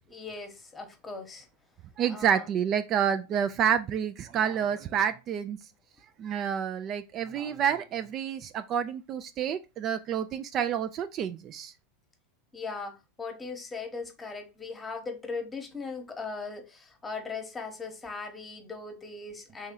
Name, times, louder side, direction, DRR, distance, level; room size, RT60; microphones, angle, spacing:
voice 1, 0.1-1.5 2.1-2.5 12.5-19.7, left 4 dB, 15° left, 1.0 m, -39 dB
voice 2, 2.0-5.6 6.2-11.7, right 8 dB, 40° right, 0.3 m, -29 dB
3.1 x 2.7 x 3.7 m
hypercardioid pair, 105°, 0 cm